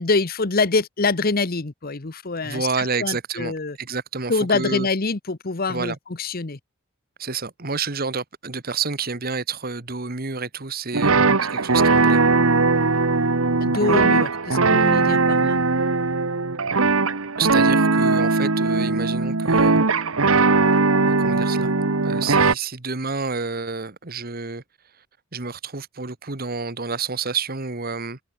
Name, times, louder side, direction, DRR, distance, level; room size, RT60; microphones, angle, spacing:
voice 1, 0.0-3.8 4.3-6.6 13.6-15.6, left 3 dB, 45° left, 1.0 m, -25 dB
voice 2, 2.4-3.5 3.8-4.9 5.7-6.0 7.2-12.2 17.4-19.8 21.0-21.7 22.0-24.6 25.3-28.2, right 5 dB, 45° right, 1.6 m, -29 dB
sound 1, 10.9-22.5, right 3 dB, 85° right, 1.5 m, -19 dB
head